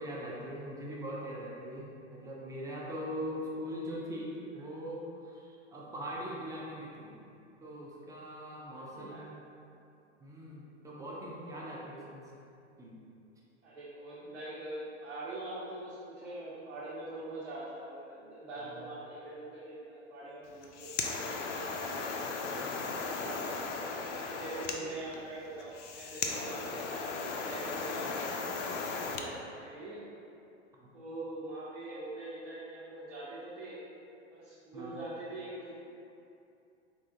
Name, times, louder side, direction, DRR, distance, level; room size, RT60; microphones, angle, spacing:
voice 1, 0.0-7.1 7.6-9.4 10.2-12.3 12.8-13.0 18.6-18.8 22.6-23.1 30.8-30.9 34.7-35.0, equal, 10° right, -4 dB, 0.4 m, -41 dB
voice 2, 8.6-9.2 13.6-22.6 23.1-23.7 24.2-27.1 27.4-30.0 30.9-33.8 34.3-35.8, right 2 dB, 75° right, -10 dB, 1.0 m, -44 dB
sound 1, 20.5-29.3, left 4 dB, 80° left, 0.5 m, -37 dB
3.8 x 2.7 x 2.6 m, 2.6 s
hypercardioid pair, 105°, 36 cm